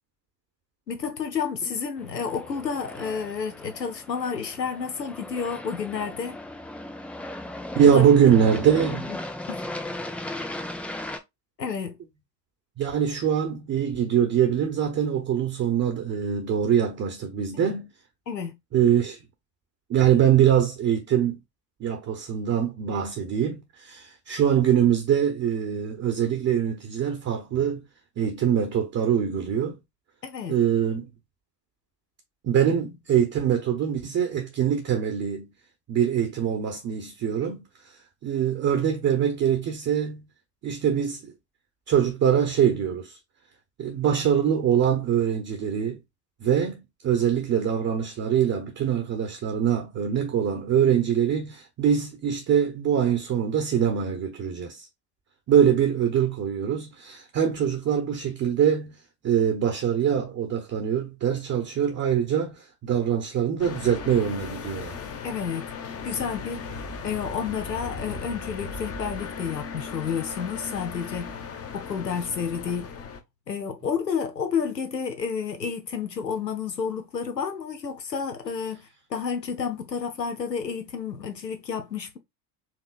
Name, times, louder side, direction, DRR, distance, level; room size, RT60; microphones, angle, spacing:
voice 1, 0.9-6.4 7.8-8.1 9.1-9.2 9.5-9.7 9.9-10.0 11.6-12.0 17.5-17.7 18.3-18.5 30.2-30.6 65.2-65.6 66.0-66.6 67.0-71.3 71.7-72.9 73.5-82.2, left 6 dB, 90° left, 0.9 m, -30 dB
Aircraft, 2.0-11.2, left 1 dB, 5° left, 0.3 m, -37 dB
voice 2, 7.7-9.1 12.8-17.9 18.7-19.2 19.9-21.4 21.8-27.8 28.2-29.8 30.5-31.1 32.4-35.5 35.9-37.6 38.2-40.3 40.6-41.3 41.9-43.2 43.8-46.0 46.4-54.9 55.5-59.0 59.2-65.0, right 8 dB, 30° right, 1.0 m, -23 dB
sound 1, 63.6-73.2, left 5 dB, 30° left, 1.0 m, -37 dB
4.7 x 3.0 x 2.4 m
figure-of-eight pair, 70°, 48 cm